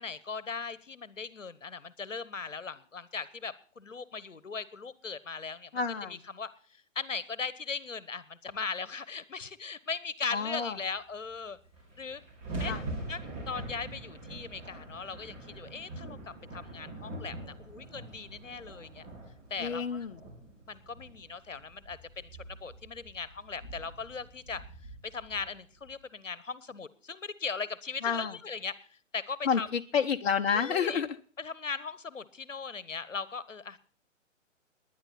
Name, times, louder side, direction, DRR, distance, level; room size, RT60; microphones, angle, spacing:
voice 1, 0.0-5.7 6.1-6.5 6.9-11.6 12.0-12.2 12.6-12.7 13.1-16.2 16.5-19.0 19.5-20.1 20.4-22.3 22.6-24.6 25.0-29.7 30.5-31.0 31.4-33.8, left 5 dB, 75° left, 17 dB, 1.2 m, -39 dB
voice 2, 5.7-6.2 10.3-10.8 12.6-12.8 19.6-20.2 28.0-28.4 29.4-31.1, left 6 dB, 50° left, 4 dB, 1.0 m, -29 dB
sound 1, 11.3-11.4 11.5-25.9, right 2 dB, 25° right, 4.9 m, -44 dB
19.5 x 10.5 x 4.3 m, 0.43 s
figure-of-eight pair, 130°, 38 cm